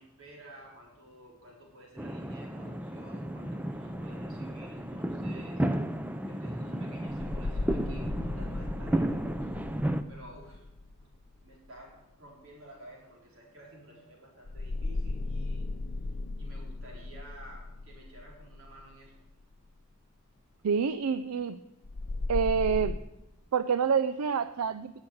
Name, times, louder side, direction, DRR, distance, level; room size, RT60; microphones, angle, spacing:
voice 1, 0.0-5.6 6.2-9.5 10.1-10.7 11.4-15.7 16.4-19.2, right 1 dB, 65° right, -2 dB, 4.3 m, -52 dB
sound 1, 2.0-10.0, right 1 dB, 5° right, 0.5 m, -33 dB
sound 2, 7.1-11.8 14.4-19.5 21.8-23.0, left 2 dB, 45° left, 0.6 m, -36 dB
voice 2, 20.6-21.6 22.3-23.0 23.5-25.0, right 6 dB, 90° right, 13 dB, 0.4 m, -27 dB
11.5 x 6.5 x 8.6 m, 0.93 s
head